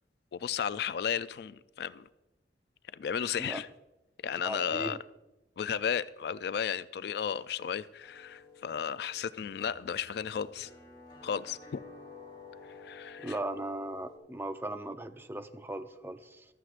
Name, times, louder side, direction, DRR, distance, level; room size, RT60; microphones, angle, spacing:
voice 1, 0.3-2.1 2.9-3.7 4.2-5.0 5.6-10.7 11.2-11.8 12.8-13.4, left 7 dB, 65° left, 0.3 m, -34 dB
voice 2, 4.4-5.0 13.2-16.5, right 1 dB, 15° right, 0.5 m, -38 dB
sound 1, 8.0-14.2, left 4 dB, 25° left, 3.5 m, -51 dB
15.0 x 13.0 x 2.5 m
head